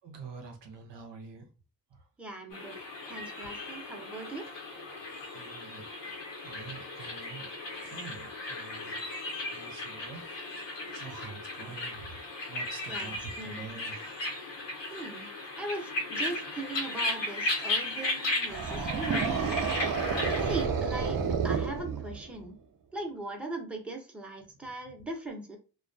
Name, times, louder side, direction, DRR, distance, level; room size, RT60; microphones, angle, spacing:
voice 1, 0.0-1.5 1.9-2.0 5.3-5.9 6.4-7.5 7.8-9.2 9.5-10.2 10.5-12.2 12.5-13.2 13.4-14.2 24.6-24.9, right 5 dB, 85° right, 0.8 m, -46 dB
voice 2, 2.2-4.5 12.9-13.6 14.9-15.3 15.6-19.6 20.4-22.6 22.9-25.6, right 2 dB, 5° right, 0.6 m, -40 dB
sound 1, 2.5-20.6, left 2 dB, 85° left, 0.9 m, -36 dB
sound 2, 18.5-22.4, right 5 dB, 50° right, 0.5 m, -30 dB
2.2 x 2.2 x 2.5 m
cardioid pair, 75°, 42 cm